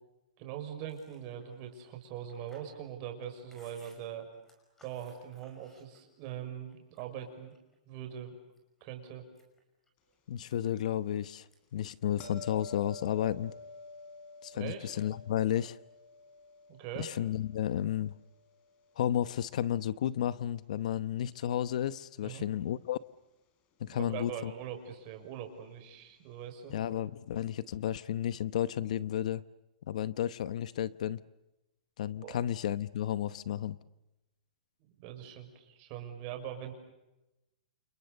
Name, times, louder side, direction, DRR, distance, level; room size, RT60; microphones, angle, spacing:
voice 1, 0.4-4.3 4.8-7.5 7.9-8.4 8.8-9.2 14.5-14.9 16.7-17.1 22.2-22.4 23.9-26.7 32.2-32.4 35.0-36.7, right 9 dB, 35° right, 6.1 m, -42 dB
Chewing mastication, 0.8-6.3 6.7-7.8 8.2-8.8 9.2-11.2 11.5-11.8 12.1-12.9, left 1 dB, 10° left, 5.7 m, -65 dB
voice 2, 10.3-11.5 11.7-13.5 14.4-15.8 17.0-18.1 19.0-23.0 23.8-24.5 26.7-29.4 29.9-31.2 32.0-33.8, left 11 dB, 60° left, 0.9 m, -32 dB
sound 1, 12.2-19.2 24.5-24.6, left 3 dB, 30° left, 3.8 m, -50 dB
29.5 x 29.0 x 6.8 m
hypercardioid pair, 160°, 4 cm